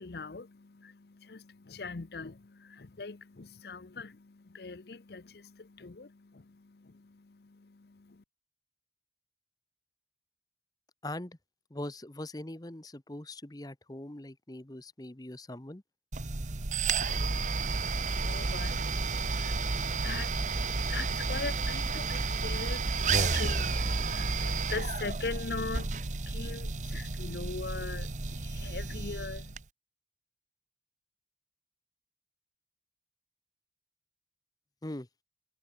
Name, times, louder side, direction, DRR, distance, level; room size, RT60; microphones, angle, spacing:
voice 1, 0.0-8.2 16.5-29.5, left 4 dB, 60° left, 0.7 m, -42 dB
voice 2, 11.0-11.4 11.7-15.8 34.8-35.1, left 1 dB, 20° left, 1.0 m, -41 dB
sound 1, 16.1-29.6, right 4 dB, 40° right, 1.0 m, -31 dB
head